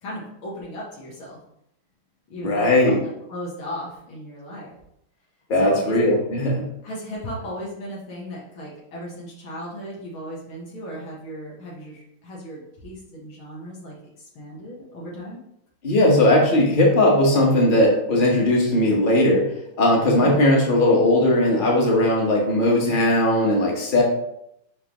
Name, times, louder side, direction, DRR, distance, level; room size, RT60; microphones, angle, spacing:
voice 1, 0.0-1.4 2.3-4.7 5.6-6.0 6.8-15.4, equal, 80° left, -5 dB, 2.3 m, -36 dB
voice 2, 2.4-3.0 5.5-6.7 15.8-19.5 19.8-24.0, left 1 dB, 30° left, -2 dB, 1.3 m, -18 dB
5.7 x 5.4 x 3.1 m, 0.77 s
omnidirectional pair, 2.2 m